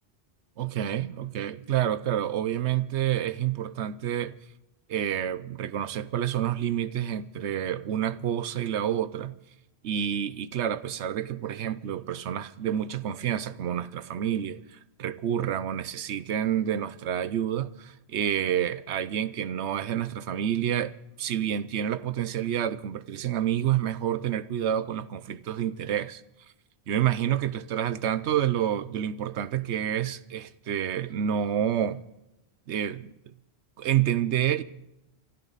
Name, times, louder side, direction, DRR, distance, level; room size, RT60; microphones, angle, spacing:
voice 1, 0.6-4.4 4.9-9.3 9.8-14.6 15.0-26.2 26.9-32.0 32.7-33.1 33.8-34.6, right 10 dB, 85° right, 1.0 m, -28 dB
28.5 x 12.5 x 4.1 m
omnidirectional pair, 1.1 m